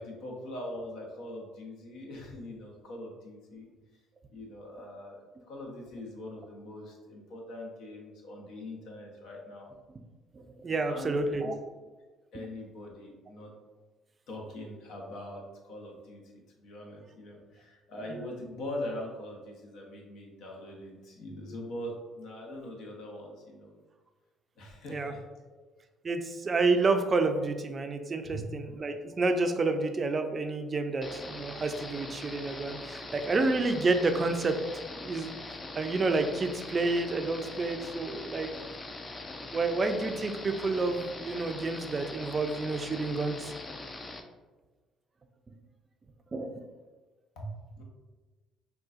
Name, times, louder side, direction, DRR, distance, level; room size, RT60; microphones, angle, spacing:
voice 1, 0.0-3.7 4.3-9.7 10.9-11.7 12.3-13.5 14.3-16.2 16.6-23.8 24.6-25.2 25.5-25.6 28.2-28.4 47.4-47.8, left 1 dB, 75° left, -1 dB, 0.8 m, -42 dB
voice 2, 10.3-11.6 24.9-25.1 26.0-34.6 34.9-35.4 35.7-38.5 39.5-43.5 46.3-46.6, right 3 dB, 35° right, 6 dB, 0.4 m, -29 dB
sound 1, 31.0-44.2, left 2 dB, 30° left, 0.4 m, -42 dB
3.8 x 2.3 x 2.4 m, 1.2 s
supercardioid pair, 70°, 0 cm